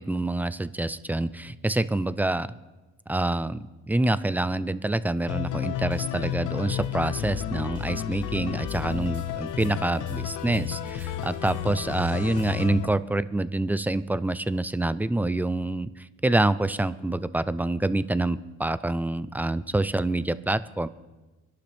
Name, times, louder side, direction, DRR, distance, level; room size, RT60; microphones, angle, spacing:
voice 1, 0.0-2.5 3.1-3.6 3.9-20.9, right 2 dB, 5° right, 15 dB, 0.5 m, -26 dB
sound 1, 5.3-12.9, left 12 dB, 85° left, 0.8 m, -32 dB
sound 2, 5.6-12.7, right 2 dB, 25° right, 3.4 m, -49 dB
23.5 x 11.5 x 3.4 m, 1.2 s
cardioid pair, 90°, 30 cm